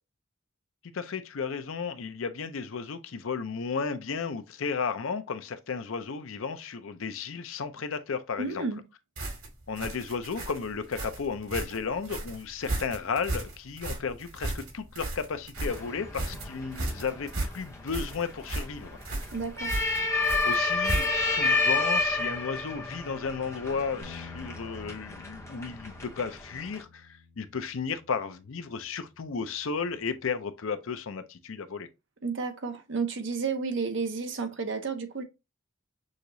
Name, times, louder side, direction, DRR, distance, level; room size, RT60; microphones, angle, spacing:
voice 1, 0.8-8.7 9.7-19.0 20.4-31.9, left 5 dB, 75° left, 0.6 m, -34 dB
voice 2, 8.4-8.8 19.3-19.8 32.2-35.2, right 4 dB, 60° right, 0.9 m, -31 dB
sound 1, 9.2-21.4, right 2 dB, 90° right, 2.1 m, -35 dB
sound 2, 15.6-26.8, left 3 dB, 15° left, 0.8 m, -31 dB
Bass guitar, 24.0-30.3, left 4 dB, 60° left, 1.1 m, -51 dB
6.4 x 2.9 x 2.6 m
head